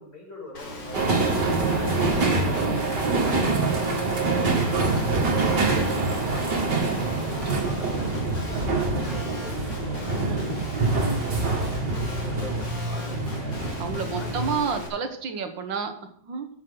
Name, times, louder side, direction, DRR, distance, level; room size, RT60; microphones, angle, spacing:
voice 1, 0.0-3.4 4.6-10.0 11.3-13.6 14.1-14.3, left 1 dB, 45° left, -3 dB, 6.0 m, -43 dB
Guitar, 0.5-14.9, equal, 90° left, 3.2 m, -36 dB
sound 1, 0.9-14.5, right 3 dB, 65° right, 3.0 m, -25 dB
voice 2, 3.7-4.1 10.1-10.6 13.8-16.5, right 5 dB, 90° right, 7 dB, 2.2 m, -31 dB
13.5 x 8.4 x 3.9 m, 0.65 s
omnidirectional pair, 2.0 m